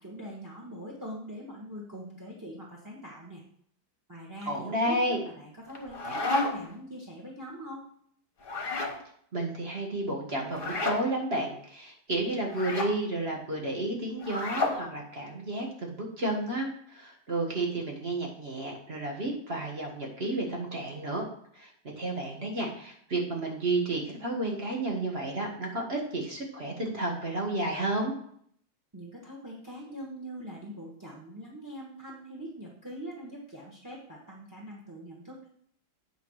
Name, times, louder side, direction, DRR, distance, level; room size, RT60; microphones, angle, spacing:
voice 1, 0.0-3.4 4.1-7.8 28.9-35.5, equal, 10° right, -3 dB, 1.3 m, -43 dB
voice 2, 4.5-5.2 9.3-21.3 21.5-21.7 22.0-28.1, right 2 dB, 30° right, -1 dB, 1.8 m, -31 dB
sound 1, 5.7-6.8 8.4-9.0 10.5-11.0 12.5-12.9 14.2-14.8, left 2 dB, 35° left, 1.2 m, -31 dB
8.3 x 3.8 x 6.4 m, 0.64 s
omnidirectional pair, 2.1 m